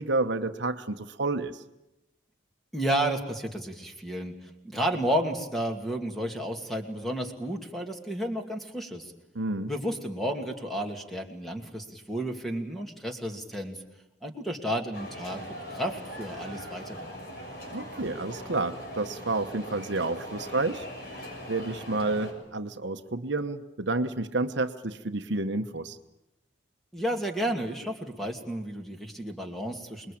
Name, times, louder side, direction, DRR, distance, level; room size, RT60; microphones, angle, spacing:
voice 1, 0.0-1.6 9.3-9.7 17.7-20.9 21.5-26.0, right 2 dB, 65° right, 8 dB, 1.1 m, -30 dB
voice 2, 2.7-4.4 4.6-9.1 9.7-13.8 14.2-15.4 15.7-17.1 26.9-30.1, right 1 dB, ahead, 3 dB, 2.5 m, -32 dB
sound 1, 14.9-22.3, equal, 50° left, 7.0 m, -41 dB
27.5 x 21.5 x 8.7 m, 0.93 s
head